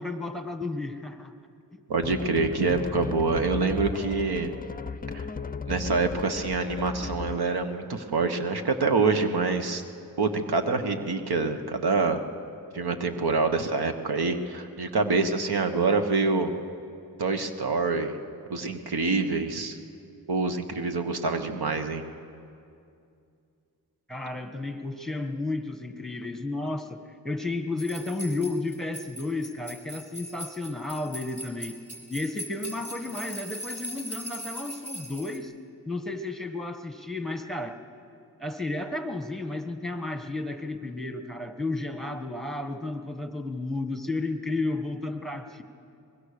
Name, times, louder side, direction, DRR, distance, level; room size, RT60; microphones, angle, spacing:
voice 1, 0.0-1.3 24.1-31.8 32.1-35.5 35.8-37.8 38.4-45.6, left 2 dB, ahead, 6 dB, 1.5 m, -32 dB
voice 2, 1.9-4.5 5.1-5.3 5.7-9.8 10.2-12.2 12.7-16.5 17.2-18.2 18.5-19.8 20.3-22.0, right 3 dB, 85° right, 7 dB, 1.3 m, -26 dB
sound 1, 2.0-7.5, left 5 dB, 25° left, 0.5 m, -36 dB
sound 2, 27.8-35.4, equal, 20° right, 4.7 m, -40 dB
23.0 x 20.5 x 6.7 m, 2.5 s
cardioid pair, 60°, 37 cm